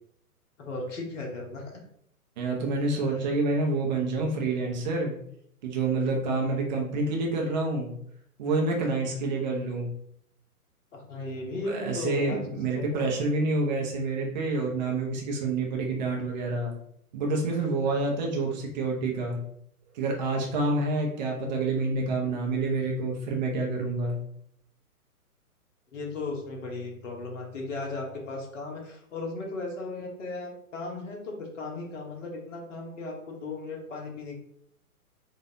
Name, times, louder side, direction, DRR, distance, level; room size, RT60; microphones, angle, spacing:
voice 1, 0.6-1.8 2.9-3.2 10.9-12.4 12.7-13.0 25.9-34.3, left 3 dB, 55° left, 0 dB, 1.2 m, -36 dB
voice 2, 2.4-5.1 5.6-7.9 8.4-9.9 11.6-16.7 17.1-19.4 19.9-24.2, right 3 dB, 30° right, 0 dB, 0.8 m, -28 dB
4.3 x 2.5 x 2.8 m, 0.69 s
figure-of-eight pair, 125°, 45 cm